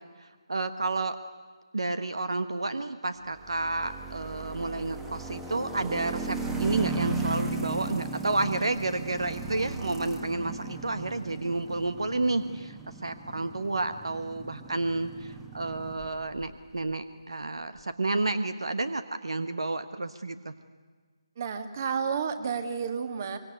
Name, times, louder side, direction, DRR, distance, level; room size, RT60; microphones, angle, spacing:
voice 1, 0.5-1.2 1.7-20.5, right 2 dB, 65° right, 10 dB, 1.3 m, -30 dB
sound 1, 3.4-16.5, right 4 dB, 5° right, 1.4 m, -36 dB
voice 2, 21.4-23.4, right 6 dB, 35° right, 8 dB, 2.1 m, -31 dB
24.5 x 24.0 x 9.5 m, 1.5 s
figure-of-eight pair, 150°, 3 cm